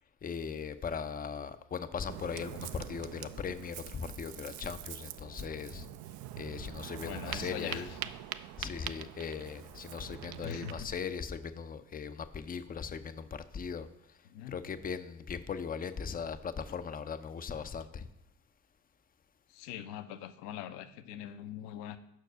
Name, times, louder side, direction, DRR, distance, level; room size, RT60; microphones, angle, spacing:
voice 1, 0.2-5.9 6.4-7.9 8.6-13.9 14.5-18.1, left 6 dB, 20° left, 11 dB, 0.5 m, -39 dB
Ocean, 2.1-10.9, right 12 dB, 50° right, 0.5 m, -44 dB
voice 2, 7.0-8.0 10.4-10.9 14.2-14.6 19.5-22.0, left 10 dB, 60° left, 12 dB, 0.7 m, -42 dB
6.1 x 4.7 x 6.5 m, 0.78 s
figure-of-eight pair, 45°, 46 cm